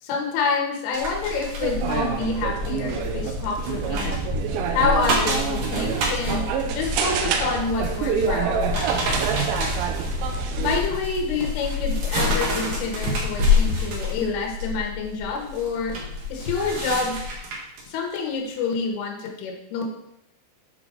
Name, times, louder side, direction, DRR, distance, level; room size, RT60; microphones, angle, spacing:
voice 1, 0.0-4.4 4.7-9.3 10.6-15.9 16.3-17.2 17.9-19.9, left 4 dB, 80° left, 1 dB, 3.8 m, -27 dB
sound 1, 0.9-17.8 18.3-18.5, left 3 dB, 60° right, 2.5 m, -28 dB
sound 2, 1.6-10.8, right 5 dB, 80° right, 2.6 m, -26 dB
8.7 x 5.8 x 3.9 m, 0.79 s
omnidirectional pair, 5.6 m